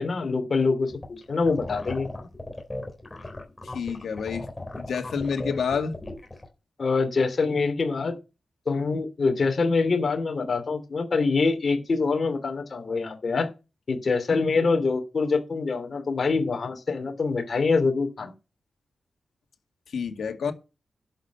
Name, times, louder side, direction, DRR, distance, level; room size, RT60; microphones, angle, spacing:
voice 1, 0.0-2.1 6.8-8.2 8.7-13.5 13.9-18.3, left 4 dB, 45° left, 2.9 m, -25 dB
sound 1, 0.9-6.4, left 1 dB, 15° left, 3.8 m, -37 dB
voice 2, 3.6-4.5 4.8-6.0 19.9-20.5, left 6 dB, 80° left, 2.1 m, -28 dB
11.5 x 6.3 x 7.0 m
wide cardioid pair, 110°, 0 cm